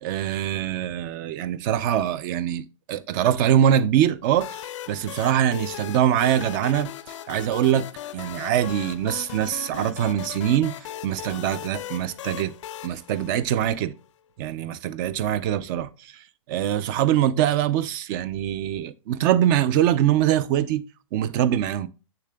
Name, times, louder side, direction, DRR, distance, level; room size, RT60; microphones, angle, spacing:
voice 1, 0.0-6.9 7.3-7.9 8.1-12.5 12.8-13.9 14.4-20.8 21.1-21.9, right 10 dB, 40° right, 0.4 m, -23 dB
sound 1, 4.3-14.0, left 11 dB, 75° left, 0.4 m, -38 dB
7.1 x 6.7 x 2.2 m
hypercardioid pair, 135°, 16 cm